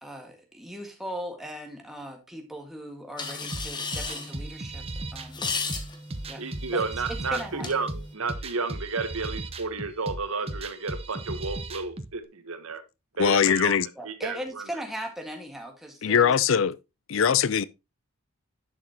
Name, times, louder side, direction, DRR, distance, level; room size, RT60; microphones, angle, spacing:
voice 1, 0.0-4.8 5.1-5.4 6.3-6.4 6.7-7.7 13.9-16.3 17.1-17.3, equal, ahead, 1.8 m, -38 dB
sound 1, 3.2-8.1, left 4 dB, 20° left, 1.0 m, -36 dB
sound 2, 3.5-12.1, right 2 dB, 25° right, 0.7 m, -37 dB
voice 2, 6.4-12.8 13.2-13.8 14.0-14.6, right 4 dB, 70° right, 1.2 m, -32 dB
voice 3, 13.2-13.9 16.0-16.7 17.1-17.6, left 7 dB, 60° left, 0.4 m, -21 dB
11.0 x 6.4 x 2.9 m
head